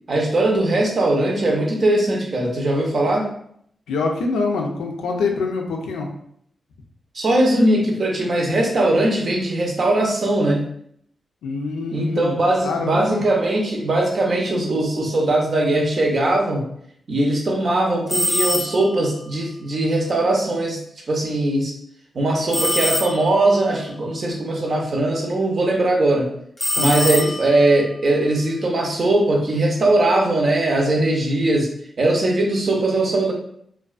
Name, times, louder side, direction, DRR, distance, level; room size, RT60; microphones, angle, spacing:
voice 1, 0.1-3.3 7.1-10.6 11.9-16.6 17.1-20.8 21.1-21.7 22.1-26.3 26.8-31.7 32.0-33.3, right 2 dB, 60° right, 0 dB, 0.7 m, -20 dB
voice 2, 3.9-6.1 11.4-12.4 12.6-13.2 26.8-27.2, left 4 dB, 90° left, 2 dB, 0.3 m, -25 dB
sound 1, 18.1-19.0 22.5-23.5 26.6-27.7, left 1 dB, 15° left, 0.6 m, -23 dB
2.3 x 2.2 x 2.3 m, 0.68 s
supercardioid pair, 40°, 0 cm